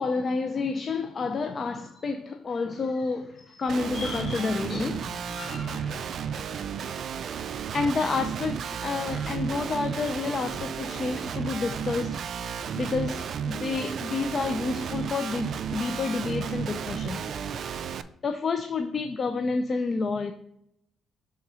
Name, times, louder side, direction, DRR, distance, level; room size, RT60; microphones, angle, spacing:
voice 1, 0.0-6.3 7.7-12.2 12.8-17.3 18.2-20.3, left 4 dB, 45° left, 0.4 m, -29 dB
Guitar, 3.7-18.0, right 7 dB, 65° right, 0.3 m, -33 dB
6.1 x 3.7 x 4.1 m
cardioid pair, 80°, 0 cm